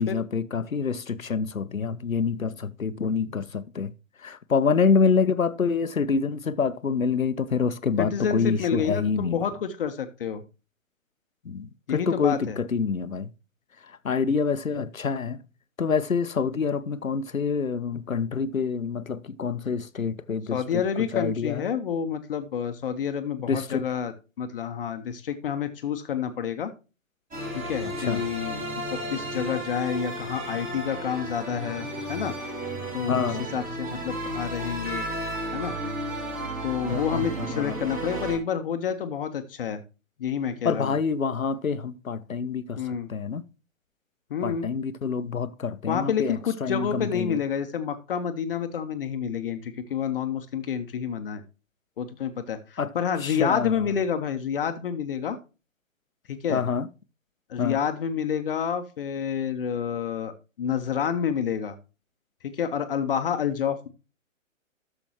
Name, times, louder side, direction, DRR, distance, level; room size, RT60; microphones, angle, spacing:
voice 1, 0.0-3.9 4.2-9.4 11.4-13.3 14.0-15.4 15.8-20.8 21.1-21.7 23.5-23.8 27.8-28.2 33.1-33.5 36.9-37.8 40.6-43.4 44.4-46.4 46.6-47.4 52.8-52.9 53.2-53.8 56.5-56.9 57.6-57.8, left 5 dB, 85° left, 0.8 m, -26 dB
voice 2, 8.0-10.4 11.9-12.6 20.5-26.7 27.7-28.6 29.1-32.3 32.9-35.0 35.5-35.7 36.6-39.8 40.2-40.9 42.8-43.1 44.3-44.7 45.9-51.4 52.0-55.4 56.3-56.6 57.5-60.3 60.6-61.7 62.4-63.9, left 7 dB, 45° left, 0.9 m, -29 dB
sound 1, 27.3-38.4, right 1 dB, 20° right, 2.8 m, -33 dB
12.0 x 7.0 x 2.9 m
figure-of-eight pair, 125°, 40 cm